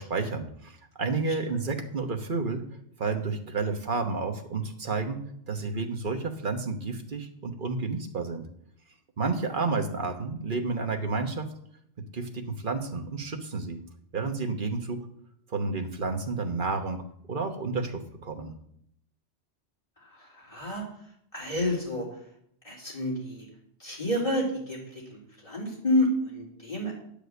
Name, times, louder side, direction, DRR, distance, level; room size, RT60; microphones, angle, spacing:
voice 1, 0.0-2.6 3.0-5.2 5.5-8.5 9.2-11.5 12.1-13.8 14.1-15.1 15.5-17.0 17.3-18.5, right 4 dB, 45° right, 4 dB, 1.3 m, -31 dB
voice 2, 20.5-20.8 21.3-22.0 22.6-23.4 23.8-26.9, left 1 dB, 30° left, -3 dB, 3.3 m, -29 dB
9.3 x 5.1 x 8.0 m, 0.69 s
omnidirectional pair, 1.2 m